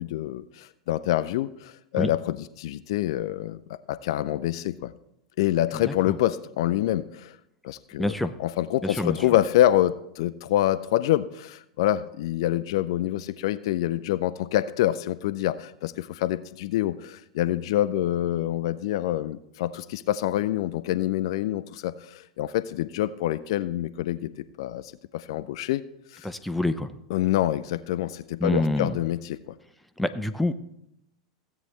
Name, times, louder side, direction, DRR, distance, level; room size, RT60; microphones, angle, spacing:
voice 1, 0.0-3.6 3.9-4.9 5.4-7.4 7.6-8.1 8.4-25.8 26.1-26.3 27.1-29.4, left 13 dB, 60° left, 13 dB, 0.4 m, -26 dB
voice 2, 5.7-6.2 8.0-8.3 8.8-9.2 26.2-26.9 28.4-29.0 30.0-30.5, left 1 dB, 5° left, 8 dB, 0.6 m, -27 dB
15.5 x 8.2 x 3.2 m, 0.79 s
figure-of-eight pair, 90°, 3 cm